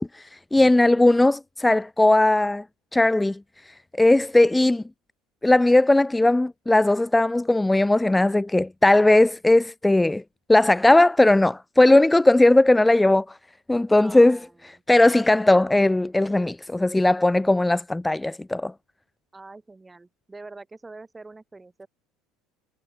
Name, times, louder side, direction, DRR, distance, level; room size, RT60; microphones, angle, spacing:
voice 1, 0.0-2.6 2.9-3.4 3.7-4.8 5.4-10.2 10.5-13.2 13.7-14.4 14.9-18.7, left 2 dB, 10° left, 0.3 m, -18 dB
voice 2, 0.6-1.1 13.9-14.8 19.3-21.9, right 3 dB, 15° right, 6.1 m, -45 dB
hypercardioid pair, 85°, 0 cm